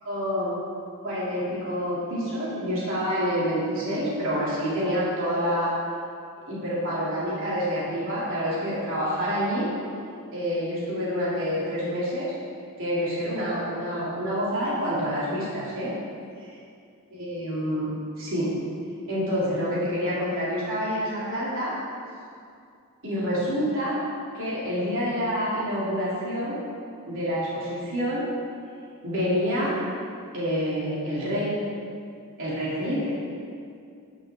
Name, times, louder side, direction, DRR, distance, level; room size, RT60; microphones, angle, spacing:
voice 1, 0.0-0.5 1.0-5.7 6.5-9.7 10.3-12.3 12.8-15.9 16.4-16.5 17.2-17.9 18.2-18.5 19.1-21.7 23.0-24.0 24.3-26.6 27.1-28.3 29.0-29.7 30.3-31.5 32.4-33.1, equal, 60° right, -8 dB, 3.2 m, -27 dB
11.5 x 11.0 x 3.8 m, 2.3 s
head